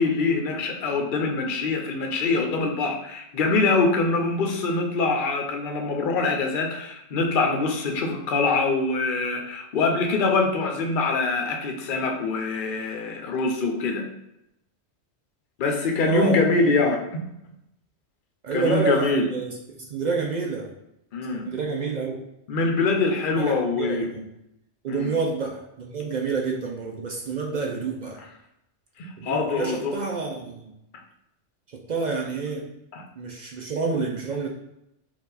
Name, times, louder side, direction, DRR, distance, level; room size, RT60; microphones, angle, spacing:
voice 1, 0.0-14.1 15.6-17.2 18.5-19.3 21.1-21.5 22.5-24.1 24.9-25.1 29.0-30.0 32.9-33.0, left 3 dB, 55° left, 2 dB, 0.7 m, -24 dB
voice 2, 16.0-16.9 18.4-20.7 21.3-22.2 23.4-24.3 24.8-28.2 29.2-30.7 31.7-32.7 33.2-34.5, right 4 dB, 55° right, 1 dB, 0.5 m, -28 dB
4.5 x 2.4 x 4.0 m, 0.85 s
omnidirectional pair, 1.2 m